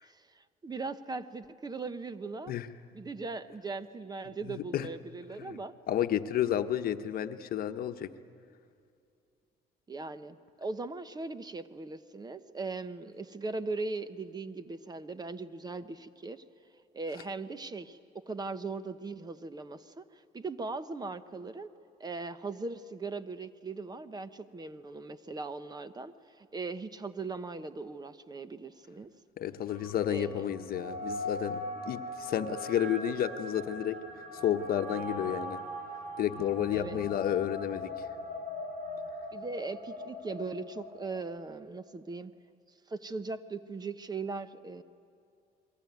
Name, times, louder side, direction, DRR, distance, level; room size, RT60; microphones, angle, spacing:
voice 1, 0.0-2.5 2.9-5.7 9.9-16.4 16.9-21.7 22.0-29.1 30.1-30.5 36.7-37.0 39.3-42.3 42.9-44.8, right 3 dB, 25° right, 13 dB, 1.0 m, -39 dB
voice 2, 4.5-4.9 5.4-5.6 5.9-8.1 29.4-35.6 36.2-38.1, left 10 dB, 60° left, 9 dB, 1.1 m, -31 dB
sound 1, 29.7-41.4, left 1 dB, 50° right, 3.6 m, -41 dB
28.5 x 22.0 x 9.4 m, 2.5 s
cardioid pair, 110°, 17 cm